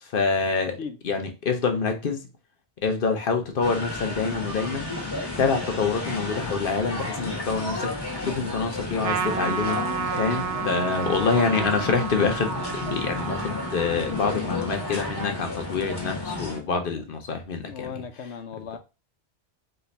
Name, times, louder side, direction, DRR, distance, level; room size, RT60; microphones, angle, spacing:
voice 1, 0.0-0.8 1.0-2.2 2.8-4.9 5.4-7.9 8.2-9.8 10.1-17.9, left 5 dB, 55° left, 1.0 m, -26 dB
sound 1, 3.6-16.6, left 2 dB, 20° left, 1.4 m, -32 dB
Trumpet, 9.0-15.7, right 7 dB, 60° right, 0.7 m, -32 dB
voice 2, 17.6-18.8, left 6 dB, 85° left, 1.0 m, -36 dB
3.8 x 3.3 x 4.1 m
omnidirectional pair, 1.1 m